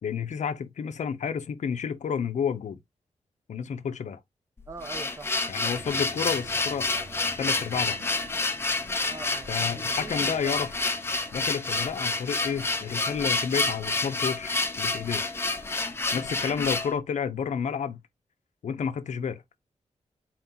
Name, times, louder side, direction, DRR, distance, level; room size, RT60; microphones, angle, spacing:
voice 1, 0.0-2.8 3.5-4.2 5.5-6.9 7.4-8.0 9.5-10.7 11.3-15.2 16.1-18.0 18.6-19.4, left 7 dB, 80° left, 0.6 m, -30 dB
sound 1, 4.6-16.9, left 3 dB, 20° left, 0.6 m, -29 dB
voice 2, 4.7-5.4 9.1-10.6 16.1-16.4, right 3 dB, 25° right, 0.7 m, -43 dB
sound 2, 5.7-16.8, right 2 dB, 55° right, 1.8 m, -50 dB
4.4 x 2.9 x 3.7 m
wide cardioid pair, 170°, 12 cm